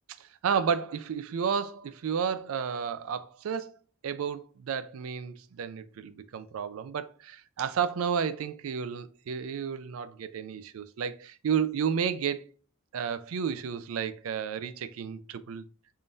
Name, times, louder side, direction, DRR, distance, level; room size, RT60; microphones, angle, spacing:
voice 1, 0.2-3.7 4.0-12.5 12.9-15.7, right 7 dB, 85° right, 0.4 m, -32 dB
3.6 x 2.6 x 3.3 m
head